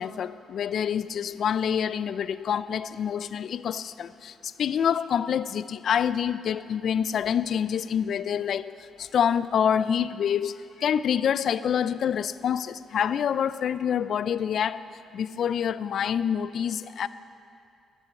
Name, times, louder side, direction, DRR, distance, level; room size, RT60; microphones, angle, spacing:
voice 1, 0.0-14.8 15.1-17.1, left 8 dB, 60° left, 15 dB, 0.4 m, -27 dB
12.5 x 7.1 x 8.0 m, 2.5 s
cardioid pair, 90°, 0 cm